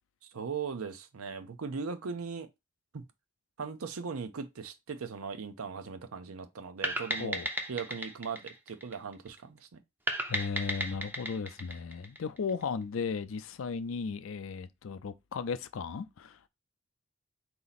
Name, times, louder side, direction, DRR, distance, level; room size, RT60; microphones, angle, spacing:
voice 1, 0.2-2.5 2.9-3.0 3.6-7.4 7.7-9.8, right 5 dB, 90° right, 0.6 m, -39 dB
sound 1, 6.8-9.4 10.1-12.6, right 1 dB, 10° right, 0.4 m, -35 dB
voice 2, 10.3-16.4, left 5 dB, 70° left, 0.4 m, -36 dB
3.9 x 2.9 x 4.1 m
head